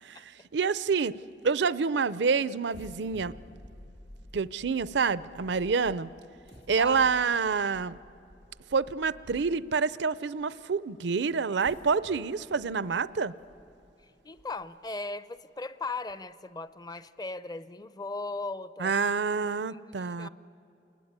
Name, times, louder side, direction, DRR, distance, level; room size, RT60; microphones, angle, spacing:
voice 1, 0.2-1.1 1.4-3.3 4.3-6.1 6.7-8.0 8.7-13.3 18.8-20.3, right 5 dB, 70° right, 17 dB, 0.5 m, -27 dB
sound 1, 2.7-9.8 10.4-10.5 11.4-14.9 15.4-15.5 15.9-16.1, equal, 65° left, 3.0 m, -52 dB
voice 2, 14.2-18.9 19.7-20.3, left 3 dB, 20° left, 15 dB, 0.6 m, -38 dB
28.5 x 20.5 x 9.7 m, 3.0 s
head